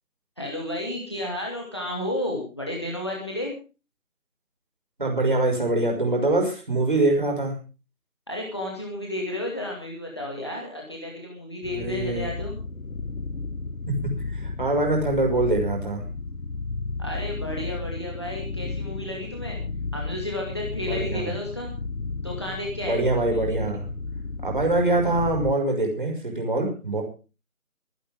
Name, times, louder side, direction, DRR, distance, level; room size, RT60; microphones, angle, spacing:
voice 1, 0.4-3.5 8.3-12.5 17.0-19.6 19.9-21.7 22.2-23.0, left 1 dB, 20° left, -1 dB, 2.2 m, -32 dB
voice 2, 5.0-7.5 11.7-12.3 13.9-16.0 20.9-21.3 22.8-23.9 24.4-27.0, right 2 dB, 35° right, 1 dB, 5.9 m, -24 dB
sound 1, 11.6-25.5, left 3 dB, 65° left, 1.3 m, -33 dB
23.5 x 11.0 x 3.6 m, 0.33 s
figure-of-eight pair, 180°, 43 cm